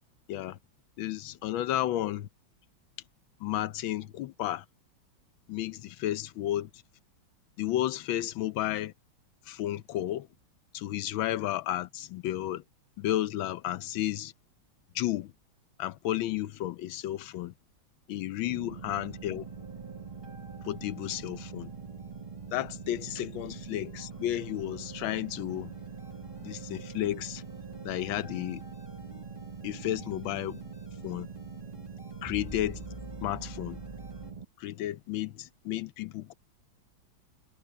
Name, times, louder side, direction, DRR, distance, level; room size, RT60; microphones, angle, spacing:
voice 1, 1.0-2.3 3.4-4.6 5.5-6.7 7.6-8.9 9.5-10.3 10.7-12.6 13.0-14.3 14.9-15.3 15.8-17.5 18.1-19.4 20.6-21.7 22.5-25.7 26.4-27.4 27.8-28.6 29.6-30.6 31.0-31.3 32.2-32.8 33.2-33.8 34.6-36.3, left 13 dB, 80° left, 1.5 m, -32 dB
sound 1, 18.4-34.5, right 5 dB, 20° right, 1.3 m, -43 dB
sound 2, 18.9-34.3, equal, 10° left, 3.2 m, -51 dB
omnidirectional pair, 2.2 m